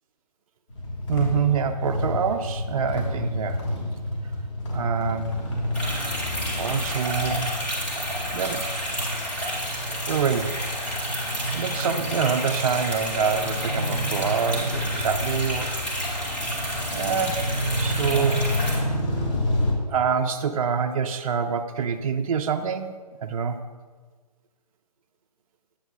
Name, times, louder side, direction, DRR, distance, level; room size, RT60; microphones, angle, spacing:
sound 1, 0.7-19.7, left 1 dB, 45° left, 1.6 m, -30 dB
voice 1, 1.1-3.6 4.7-5.4 6.6-7.5 8.3-8.6 10.1-10.6 11.5-15.7 16.9-17.4 17.8-18.4 19.9-22.9 23.2-23.6, right 6 dB, 55° right, 6 dB, 0.4 m, -26 dB
sound 2, 5.7-18.8, equal, 5° left, 0.9 m, -31 dB
8.1 x 7.8 x 2.3 m, 1.4 s
figure-of-eight pair, 145°, 21 cm